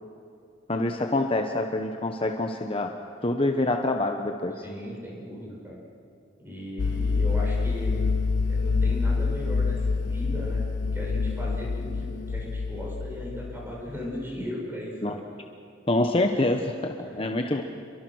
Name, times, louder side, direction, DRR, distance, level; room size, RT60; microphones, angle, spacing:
voice 1, 0.7-2.9 3.2-4.6 15.0-15.1 15.9-17.6, left 2 dB, 30° left, 4 dB, 1.1 m, -26 dB
voice 2, 4.6-5.8 6.4-8.0 8.4-15.2 17.0-17.2, equal, 10° right, -3 dB, 7.6 m, -37 dB
sound 1, 6.8-14.2, left 4 dB, 75° left, 0.5 m, -27 dB
29.5 x 23.5 x 6.4 m, 2.4 s
head